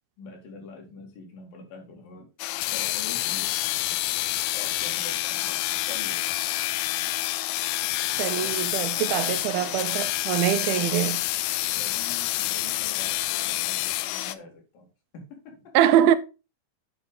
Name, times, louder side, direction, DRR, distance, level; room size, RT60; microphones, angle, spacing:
voice 1, 0.2-2.3 2.7-3.5 3.8-3.9 4.5-6.3 8.3-8.6 8.9-9.9 10.5-11.0 11.6-14.9 15.1-15.9, left 3 dB, 70° left, 4.0 m, -45 dB
sound 1, 2.4-14.4, left 17 dB, 90° left, 2.4 m, -28 dB
voice 2, 8.2-11.2 15.8-16.2, right 11 dB, 85° right, 2.4 m, -23 dB
9.0 x 5.2 x 3.8 m
omnidirectional pair, 4.3 m